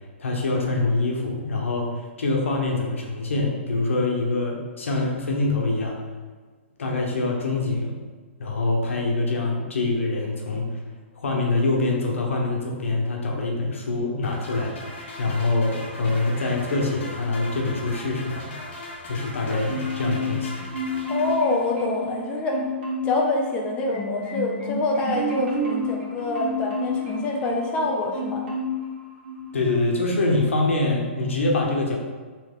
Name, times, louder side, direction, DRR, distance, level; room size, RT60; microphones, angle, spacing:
voice 1, 0.2-6.0 6.8-8.0 8.4-10.8 11.1-14.8 15.2-18.5 19.0-20.6 29.5-32.0, left 2 dB, 90° left, 0 dB, 0.9 m, -25 dB
sound 1, 14.2-22.0, left 1 dB, 60° left, 1.2 m, -39 dB
Marimba xylophone, 19.7-20.4 20.7-22.2 22.5-23.2 23.6-27.8 28.1-28.9 29.2-29.4, left 1 dB, 60° right, 1.4 m, -29 dB
voice 2, 21.1-22.6 23.0-28.4, left 2 dB, 15° left, 0 dB, 0.3 m, -26 dB
3.1 x 3.1 x 3.6 m, 1.4 s
hypercardioid pair, 155°, 7 cm